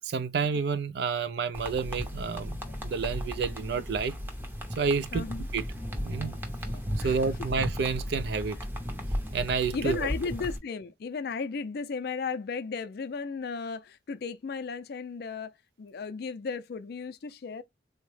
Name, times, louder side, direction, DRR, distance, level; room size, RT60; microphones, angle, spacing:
voice 1, 0.0-2.6 2.8-4.2 4.8-5.3 5.5-5.6 6.0-6.4 7.0-8.6 9.3-10.1, right 5 dB, 65° right, 0.4 m, -29 dB
sound 1, 1.5-10.6, equal, 10° right, 0.6 m, -35 dB
voice 2, 5.1-5.5 7.0-7.2 9.7-17.6, left 5 dB, 60° left, 0.4 m, -35 dB
3.7 x 2.1 x 3.1 m
head